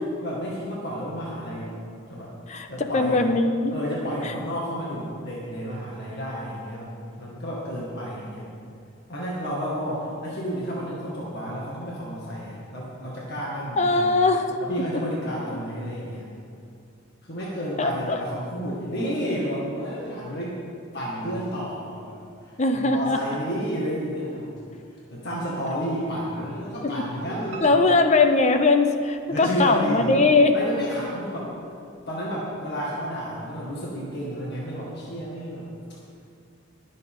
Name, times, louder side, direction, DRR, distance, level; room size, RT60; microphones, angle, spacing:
voice 1, 0.2-1.8 2.1-2.3 2.7-3.2 3.7-6.9 7.2-8.5 9.1-14.2 14.6-16.3 17.2-20.6 20.9-22.2 22.4-24.5 25.1-27.8 29.3-30.2 30.5-31.5 32.1-35.7, equal, 50° left, -5 dB, 2.0 m, -31 dB
voice 2, 2.5-3.7 4.2-4.3 13.8-14.6 17.8-18.2 22.6-23.2 26.8-26.9 27.6-30.6, left 3 dB, 30° left, 7 dB, 0.6 m, -20 dB
Piano, 27.5-29.4 29.9-30.7 31.1-31.2 31.6-31.7 32.0-32.1, right 1 dB, 70° right, 1.4 m, -45 dB
20.5 x 7.6 x 3.8 m, 2.4 s
head